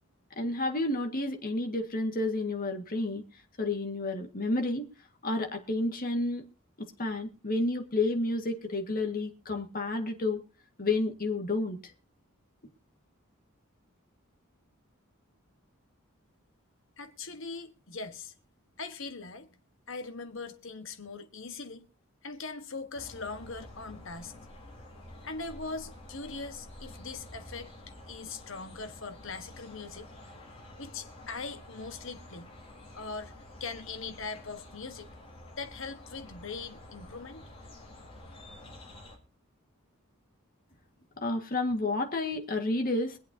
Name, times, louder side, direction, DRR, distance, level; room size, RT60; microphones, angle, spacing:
voice 1, 0.4-3.2 3.6-4.9 5.2-6.4 6.8-10.4 10.8-11.8 41.2-43.2, left 2 dB, 45° left, 1.8 m, -30 dB
voice 2, 17.0-18.3 18.8-19.5 19.9-21.9 22.2-24.4 25.2-27.7 28.1-30.1 30.8-32.5 32.9-33.3 33.6-35.1 35.6-37.4, left 4 dB, 65° left, 1.4 m, -41 dB
sound 1, 22.9-39.2, left 1 dB, 30° left, 4.1 m, -49 dB
24.0 x 8.3 x 2.8 m
head